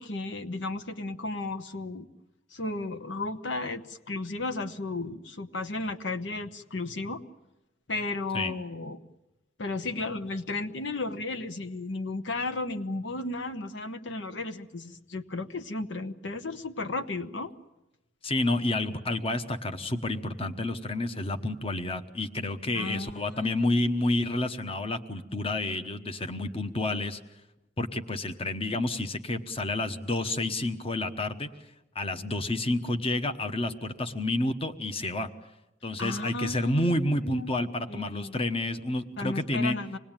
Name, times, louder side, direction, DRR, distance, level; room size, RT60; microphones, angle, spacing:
voice 1, 0.0-2.1 2.5-7.2 7.9-9.0 9.6-17.5 22.7-23.7 36.0-38.4 39.2-40.0, left 2 dB, 75° left, 9 dB, 1.1 m, -34 dB
voice 2, 18.2-27.2 27.8-31.5 31.9-35.3 35.8-39.8, left 2 dB, 30° left, 8 dB, 1.1 m, -29 dB
26.0 x 19.5 x 9.0 m, 0.97 s
head